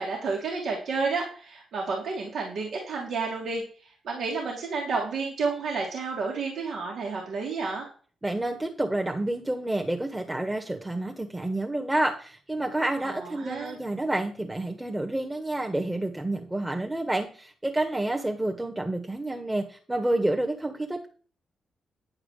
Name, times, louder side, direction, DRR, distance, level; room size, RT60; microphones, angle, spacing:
voice 1, 0.0-7.9 13.0-13.8, right 4 dB, 70° right, -2 dB, 2.7 m, -31 dB
voice 2, 8.2-21.1, right 1 dB, 15° right, 2 dB, 1.8 m, -29 dB
9.7 x 4.9 x 6.6 m, 0.42 s
hypercardioid pair, 45°, 0 cm